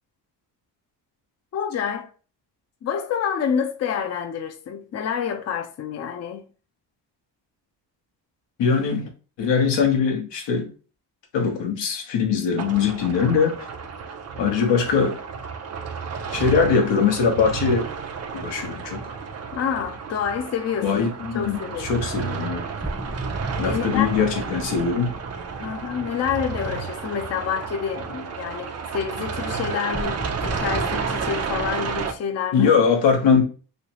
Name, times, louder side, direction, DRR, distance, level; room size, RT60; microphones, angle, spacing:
voice 1, 1.5-2.1 2.8-6.4 19.5-21.0 21.3-21.9 23.7-24.1 25.6-32.7, left 7 dB, 40° left, 0.5 m, -28 dB
voice 2, 8.6-9.1 9.4-10.7 11.3-13.6 14.4-15.2 16.3-17.9 18.3-19.1 20.8-22.6 23.6-25.1 32.5-33.4, left 6 dB, 90° left, 1.1 m, -21 dB
sound 1, 12.6-32.1, right 6 dB, 40° right, 0.5 m, -32 dB
sound 2, 22.8-27.9 29.9-32.2, right 1 dB, 5° right, 0.6 m, -35 dB
3.2 x 3.1 x 2.9 m
cardioid pair, 105°, 42 cm